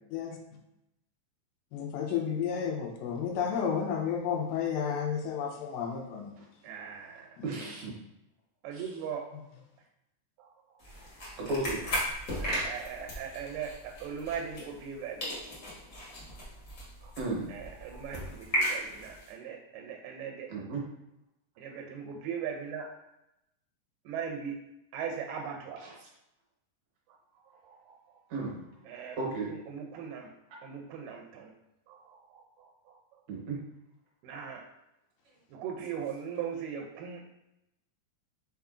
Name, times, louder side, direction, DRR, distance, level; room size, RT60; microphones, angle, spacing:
voice 1, 1.7-6.3 7.4-7.5, left 7 dB, 85° left, 1 dB, 2.2 m, -32 dB
voice 2, 6.6-7.4 8.6-9.3 10.4-10.5 11.0-11.3 12.4-15.3 17.0-17.1 17.5-20.5 21.6-22.9 24.1-24.6 24.9-25.8 27.6-28.0 28.9-29.2 29.7-30.3 30.6-31.5 31.9-33.0 34.2-34.6 35.5-37.3, right 7 dB, 85° right, 1 dB, 2.2 m, -39 dB
voice 3, 7.4-7.9 8.7-8.9 11.4-11.9 17.2-17.5 20.5-20.8 25.8-25.9 28.3-28.6 29.2-29.5 33.3-33.6, right 3 dB, 65° right, -3 dB, 2.1 m, -34 dB
sound 1, 10.8-14.9 15.2-19.3, equal, 65° left, 0.9 m, -36 dB
5.7 x 3.6 x 2.4 m, 0.87 s
omnidirectional pair, 3.8 m